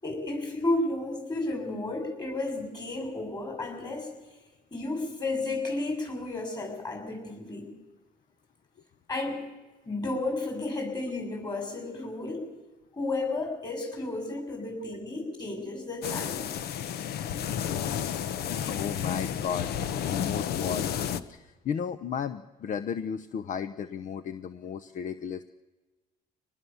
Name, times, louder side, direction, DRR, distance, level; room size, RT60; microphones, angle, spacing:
voice 1, 0.0-4.1 4.7-7.7 9.1-9.4 9.8-12.5 12.9-16.6, left 2 dB, 25° left, 4 dB, 6.8 m, -32 dB
sound 1, 16.0-21.2, left 9 dB, 70° left, 1.1 m, -31 dB
voice 2, 18.3-25.4, left 7 dB, 50° left, 13 dB, 0.8 m, -35 dB
24.0 x 19.5 x 7.1 m, 1.2 s
cardioid pair, 110°, 17 cm